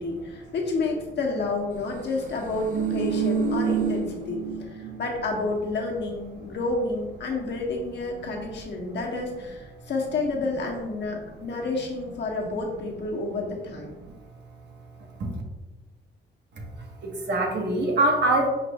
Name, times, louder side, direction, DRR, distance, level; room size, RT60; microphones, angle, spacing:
voice 1, 0.0-4.4 4.7-13.9, left 3 dB, 60° left, 0 dB, 1.1 m, -30 dB
sound 1, 2.4-5.0 5.3-5.5, right 6 dB, 40° right, 0.6 m, -27 dB
voice 2, 17.0-18.5, right 2 dB, 60° right, 1 dB, 1.1 m, -23 dB
5.8 x 2.6 x 3.4 m, 1.1 s
cardioid pair, 90°, 20 cm